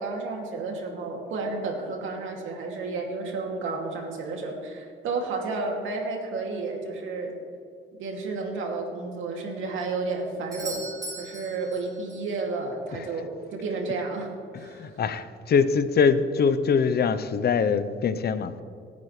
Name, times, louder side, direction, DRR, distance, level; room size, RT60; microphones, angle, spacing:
voice 1, 0.0-7.3 8.0-10.8 11.2-14.3 14.6-14.9, right 3 dB, 80° right, 2.6 m, -31 dB
Doorbell, 10.5-12.4 16.4-16.5, right 2 dB, 20° right, 3.9 m, -39 dB
voice 2, 14.5-18.5, left 6 dB, 55° left, 0.8 m, -23 dB
26.0 x 9.3 x 3.3 m
cardioid pair, 90°, 20 cm